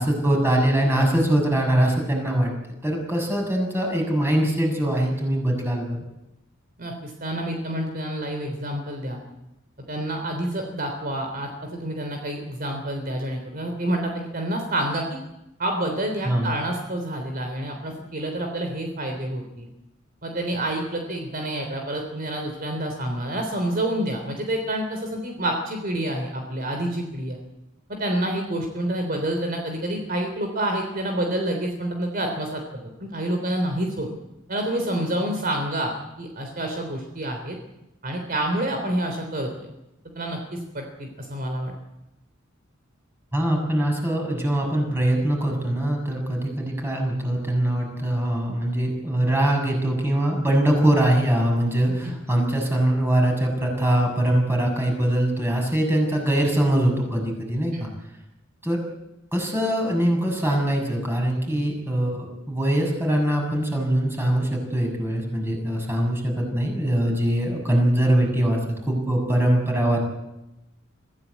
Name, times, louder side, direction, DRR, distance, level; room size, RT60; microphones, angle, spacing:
voice 1, 0.0-2.5 2.8-6.0 16.2-16.5 43.3-57.9 58.6-58.8 59.3-68.6 68.9-70.0, right 1 dB, 10° right, 1 dB, 6.9 m, -22 dB
voice 2, 6.8-9.2 9.9-11.5 11.8-15.0 15.6-19.7 20.2-27.4 27.9-34.1 34.5-37.6 38.0-39.5 40.2-41.7 57.7-57.9, right 1 dB, 45° right, 3 dB, 3.5 m, -28 dB
25.5 x 15.5 x 8.4 m, 0.92 s
head